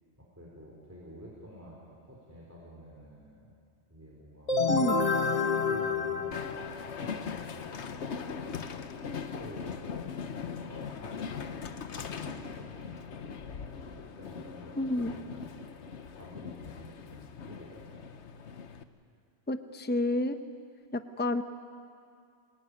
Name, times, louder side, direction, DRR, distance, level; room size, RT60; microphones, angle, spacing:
voice 1, 0.2-3.5 3.9-4.6 5.6-8.6 9.3-9.9 10.4-11.7 12.0-15.7 16.1-18.1, equal, 15° right, -5 dB, 4.2 m, -50 dB
sound 1, 4.5-7.2, left 4 dB, 35° left, 1.2 m, -28 dB
Train, 6.3-18.8, left 6 dB, 85° left, 1.3 m, -40 dB
voice 2, 14.8-15.1 19.5-20.4 20.9-21.4, left 2 dB, 10° left, 9 dB, 0.8 m, -29 dB
25.5 x 20.5 x 9.8 m, 2.4 s
omnidirectional pair, 1.1 m